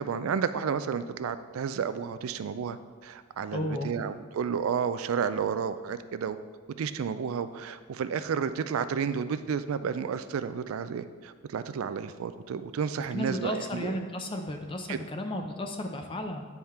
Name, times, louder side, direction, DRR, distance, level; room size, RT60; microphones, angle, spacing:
voice 1, 0.0-6.4 6.8-14.0 14.9-15.0, right 6 dB, 85° right, 12 dB, 0.4 m, -31 dB
voice 2, 3.5-3.9 13.1-16.5, left 1 dB, 25° left, 4 dB, 0.5 m, -34 dB
9.3 x 3.6 x 4.3 m, 1.5 s
head